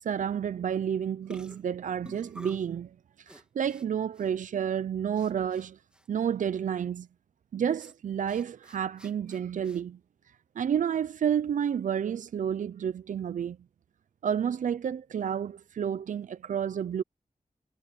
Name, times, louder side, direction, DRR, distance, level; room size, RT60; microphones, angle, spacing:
voice 1, 0.0-5.8 6.1-7.1 7.5-10.0 10.6-13.6 14.2-17.0, right 8 dB, 85° right, 0.4 m, -30 dB
sound 1, 0.7-0.9 1.3-2.7 3.3-3.9 4.1-4.3 5.2-5.7 5.9-6.1 7.8-7.9 8.3-9.8, right 1 dB, 5° right, 2.7 m, -48 dB
wide cardioid pair, 100°, 13 cm